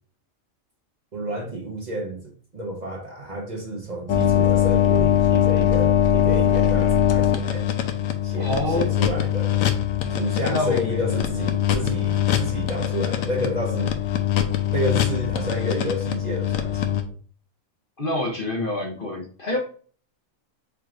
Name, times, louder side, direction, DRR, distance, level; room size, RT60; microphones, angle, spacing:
voice 1, 1.1-7.7 8.2-9.6 10.1-14.0 14.7-17.1, right 1 dB, 40° right, 0.8 m, -30 dB
sound 1, 4.1-17.0, left 10 dB, 80° left, 1.1 m, -22 dB
voice 2, 8.4-8.9 10.4-11.0 18.0-19.6, left 2 dB, 45° left, 0.9 m, -26 dB
4.7 x 4.6 x 2.4 m
omnidirectional pair, 1.4 m